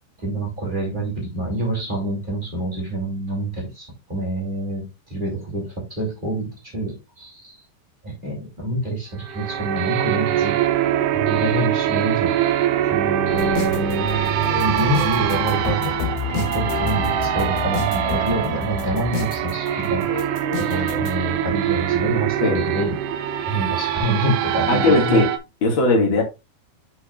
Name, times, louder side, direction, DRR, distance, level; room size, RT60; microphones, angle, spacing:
voice 1, 0.2-7.6 8.0-10.6 11.1-12.3 12.9-15.9 16.3-20.1 20.6-23.2 23.4-25.2, right 1 dB, 20° right, 1.6 m, -26 dB
sound 1, 9.2-25.4, right 11 dB, 80° right, 2.4 m, -23 dB
sound 2, 13.3-21.2, left 8 dB, 75° left, 3.5 m, -30 dB
voice 2, 24.7-25.2 25.6-26.2, left 2 dB, 45° left, 1.6 m, -18 dB
8.5 x 5.9 x 2.4 m
omnidirectional pair, 5.2 m